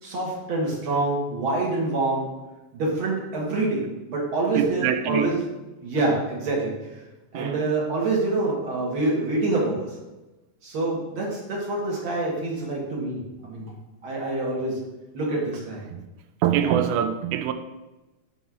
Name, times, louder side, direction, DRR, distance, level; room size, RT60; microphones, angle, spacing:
voice 1, 0.0-2.3 2.7-3.8 4.1-5.3 5.8-7.0 7.3-9.9 10.6-13.7 14.0-14.8 15.1-15.8 16.6-16.7, right 2 dB, 45° right, 2.0 m, -26 dB
voice 2, 4.5-5.3 7.3-7.6 15.9-16.0 16.4-17.5, right 9 dB, 80° right, 1.9 m, -24 dB
5.5 x 4.1 x 6.1 m
omnidirectional pair, 3.8 m